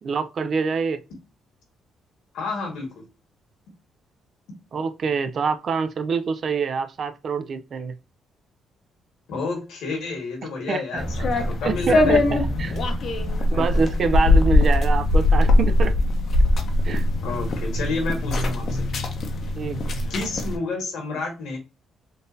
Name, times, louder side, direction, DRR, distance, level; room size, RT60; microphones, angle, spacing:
voice 1, 0.0-1.0 4.7-7.9 10.7-11.3 11.6-12.8 13.5-15.9 16.8-17.0 19.6-19.9, right 5 dB, 50° right, 0.4 m, -26 dB
voice 2, 2.3-3.0 9.3-12.2 13.5-13.7 17.2-18.9 20.1-21.6, left 3 dB, 85° left, 1.6 m, -30 dB
sound 1, 11.0-20.6, left 2 dB, 55° left, 0.7 m, -21 dB
3.8 x 2.5 x 2.5 m
cardioid pair, 90°, 0 cm